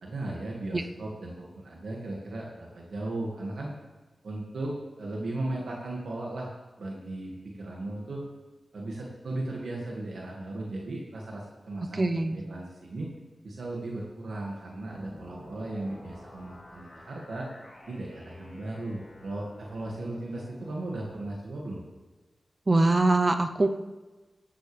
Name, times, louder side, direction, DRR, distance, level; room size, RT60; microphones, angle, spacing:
voice 1, 0.0-3.7 4.2-6.5 6.8-8.2 8.7-13.1 13.4-17.5 17.9-21.8, right 2 dB, 90° right, -2 dB, 2.0 m, -36 dB
voice 2, 11.9-12.4 22.7-23.7, right 2 dB, 35° right, 7 dB, 0.6 m, -23 dB
sound 1, 14.9-21.1, left 1 dB, 30° left, 3.9 m, -50 dB
17.0 x 12.5 x 3.4 m, 1.2 s
wide cardioid pair, 95°, 0 cm